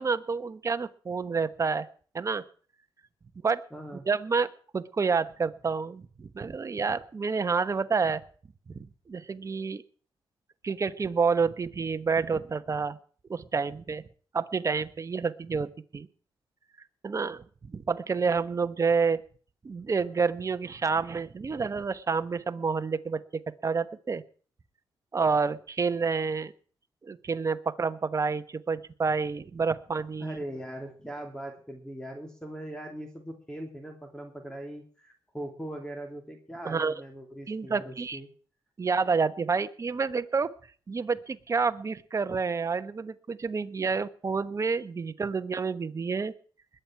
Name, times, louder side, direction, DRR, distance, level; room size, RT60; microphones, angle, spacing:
voice 1, 0.0-1.9 2.1-2.4 3.4-3.6 4.1-8.2 8.7-9.8 10.6-13.0 13.3-14.0 14.3-16.1 17.0-17.4 17.7-19.2 19.6-24.2 25.1-26.5 27.0-30.4 36.6-36.9 37.5-38.2 38.8-40.5 40.9-46.3, right 5 dB, 35° right, 11 dB, 1.1 m, -29 dB
voice 2, 3.7-4.0 30.2-38.3, right 1 dB, 5° left, 3 dB, 2.9 m, -40 dB
21.0 x 9.1 x 4.6 m, 0.43 s
cardioid pair, 100°, 9 cm